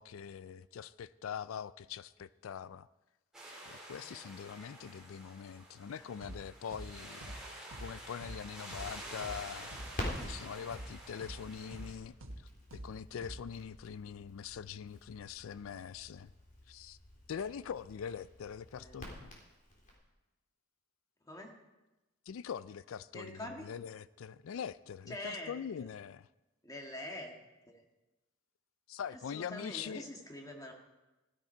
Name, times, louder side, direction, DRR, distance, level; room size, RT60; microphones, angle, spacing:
voice 1, 0.0-2.9 3.6-7.4 7.8-9.7 10.2-12.2 12.7-16.3 16.7-17.0 17.3-19.4 22.3-26.3 28.9-30.0, left 7 dB, 75° left, 17 dB, 0.4 m, -43 dB
sound 1, 3.3-11.9, right 1 dB, 5° right, 4.5 m, -49 dB
sound 2, 6.2-6.4 6.7-6.9 7.2-7.4 7.7-7.9 8.2-8.4 8.7-8.9 9.2-9.4 9.7-9.9 10.2-10.4 10.7-10.9 11.2-11.4 11.7-11.9 12.2-12.4 12.7-12.9 13.2-13.4, right 1 dB, 80° right, 1.5 m, -45 dB
Crackle, 8.7-19.9, left 1 dB, 40° left, 3.7 m, -48 dB
voice 2, 23.1-23.7 25.1-25.9 26.6-27.3 27.7-27.8 29.3-30.7, left 1 dB, 15° left, 1 dB, 1.8 m, -45 dB
16.0 x 13.5 x 4.4 m, 1.0 s
head